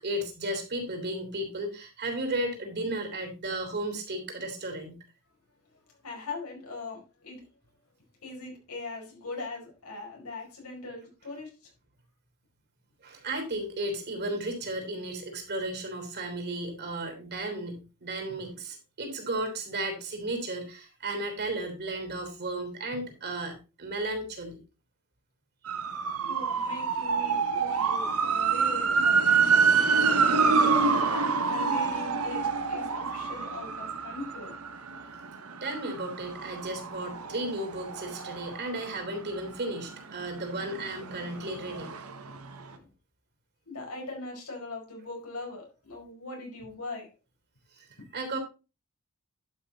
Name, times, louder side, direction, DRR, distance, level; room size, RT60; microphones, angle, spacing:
voice 1, 0.0-5.0 13.0-24.6 35.6-41.9 47.7-47.9 48.1-48.4, right 1 dB, 50° right, 4 dB, 3.4 m, -34 dB
voice 2, 5.9-7.5 8.2-11.7 26.2-29.8 30.2-34.5 42.2-42.4 42.7-42.9 43.6-47.1, left 3 dB, 80° left, 0 dB, 4.8 m, -41 dB
sound 1, 25.7-39.4 39.8-42.4 42.6-42.7, right 5 dB, 80° right, 1.3 m, -27 dB
11.5 x 5.7 x 4.2 m, 0.31 s
head